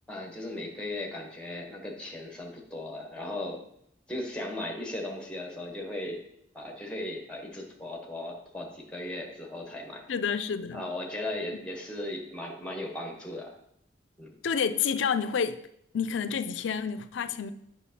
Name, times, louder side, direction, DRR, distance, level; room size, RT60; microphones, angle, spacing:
voice 1, 0.1-3.6 4.1-6.2 6.5-10.0 10.7-13.5 14.2-14.4, left 1 dB, 5° left, 0.9 m, -37 dB
voice 2, 10.1-10.8 14.4-15.6 15.9-17.5, left 6 dB, 80° left, 0.4 m, -29 dB
8.2 x 5.6 x 2.8 m
head